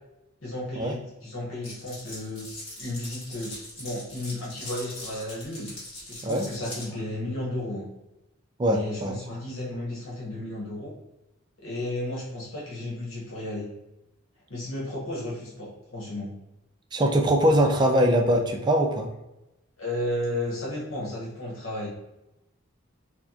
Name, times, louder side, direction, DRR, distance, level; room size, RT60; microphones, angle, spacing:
voice 1, 0.4-2.5 2.8-5.7 6.1-7.8 8.7-10.9 11.6-13.7 14.5-16.3 19.8-21.9, left 1 dB, 75° left, -5 dB, 1.0 m, -33 dB
Glass, 1.6-6.9, left 1 dB, 30° left, 1.4 m, -41 dB
voice 2, 8.6-9.2 16.9-19.1, right 1 dB, 20° right, 3 dB, 0.4 m, -22 dB
4.4 x 2.1 x 2.8 m, 0.93 s
head